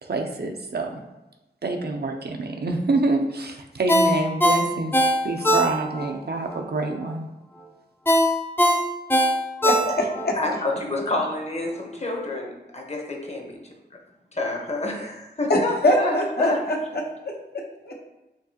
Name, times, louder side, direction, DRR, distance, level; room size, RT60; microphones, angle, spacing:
voice 1, 0.0-1.0 1.6-7.3, right 2 dB, 65° right, 4 dB, 0.5 m, -26 dB
Ringtone, 3.9-6.1 6.5-6.6 8.1-10.3 10.7-10.8, equal, 10° left, 0.5 m, -20 dB
voice 2, 9.6-10.3 15.5-17.9, left 1 dB, 65° left, -1 dB, 0.8 m, -24 dB
voice 3, 10.3-12.5 12.9-13.7 14.3-16.6, left 2 dB, 40° left, 1 dB, 0.9 m, -28 dB
4.6 x 2.8 x 2.9 m, 1.0 s
cardioid pair, 45°, 18 cm